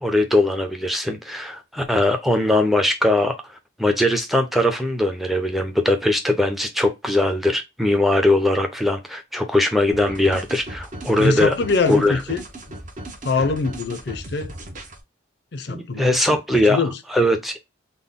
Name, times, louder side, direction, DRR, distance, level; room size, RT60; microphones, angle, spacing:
voice 1, 0.0-3.3 3.8-11.5 11.9-12.2 15.7-16.8 17.1-17.6, left 1 dB, ahead, 0.6 m, -20 dB
sound 1, 9.9-15.0, right 1 dB, 40° right, 0.8 m, -37 dB
voice 2, 11.2-12.4 13.2-14.5 15.5-17.0, left 4 dB, 55° left, 0.6 m, -24 dB
3.8 x 2.2 x 3.6 m
head